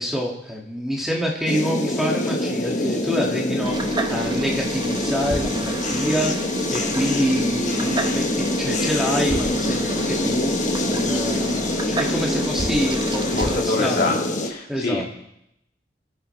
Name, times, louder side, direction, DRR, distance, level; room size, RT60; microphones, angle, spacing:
voice 1, 0.0-6.3 6.7-14.2 14.7-15.0, equal, ahead, -3 dB, 2.2 m, -27 dB
sound 1, 1.5-14.5, left 1 dB, 45° left, 1.3 m, -25 dB
sound 2, 3.6-13.6, right 2 dB, 25° right, 0.9 m, -30 dB
voice 2, 13.4-15.0, left 2 dB, 60° left, -1 dB, 2.5 m, -25 dB
26.5 x 9.6 x 3.3 m, 0.80 s
head